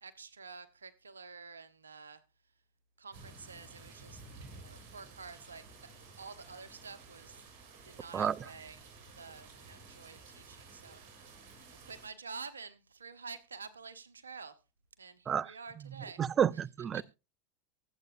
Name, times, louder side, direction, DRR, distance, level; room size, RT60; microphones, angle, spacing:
voice 1, 0.0-2.2 3.0-4.2 4.5-5.6 6.2-7.5 7.8-8.8 9.2-11.5 11.8-14.6 15.0-16.2 16.9-17.0, right 5 dB, 85° right, 1.0 m, -49 dB
sound 1, 3.1-12.1, right 3 dB, 55° right, 6.9 m, -53 dB
voice 2, 16.2-17.0, right 8 dB, 30° right, 0.5 m, -30 dB
23.5 x 8.1 x 2.6 m
hypercardioid pair, 90°, 0 cm